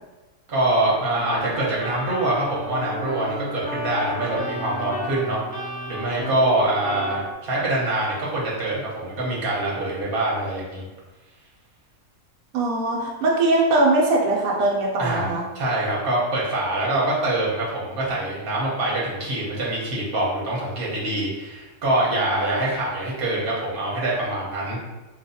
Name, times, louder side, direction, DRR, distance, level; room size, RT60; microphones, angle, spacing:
voice 1, 0.5-10.8 15.0-24.8, right 1 dB, 45° right, -5 dB, 1.0 m, -25 dB
sound 1, 1.2-7.3, equal, 10° left, 0.4 m, -33 dB
voice 2, 12.5-15.5, right 2 dB, 80° right, -3 dB, 1.1 m, -21 dB
3.9 x 2.4 x 2.7 m, 1.1 s
omnidirectional pair, 1.5 m